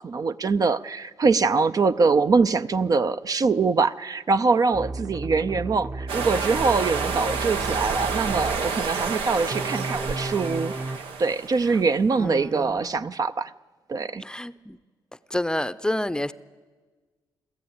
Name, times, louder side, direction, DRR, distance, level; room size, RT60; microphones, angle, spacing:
voice 1, 0.0-10.7 11.2-13.5 13.9-14.2, right 4 dB, 45° right, 12 dB, 0.6 m, -23 dB
sound 1, 4.7-8.7 9.5-11.0, right 2 dB, 25° right, 1.0 m, -34 dB
sound 2, 6.1-11.9, right 5 dB, 90° right, 1.2 m, -29 dB
voice 2, 12.2-12.7 14.2-14.8 15.3-16.3, left 1 dB, 10° left, 15 dB, 0.6 m, -28 dB
25.5 x 13.0 x 8.7 m, 1.4 s
cardioid pair, 70°, 9 cm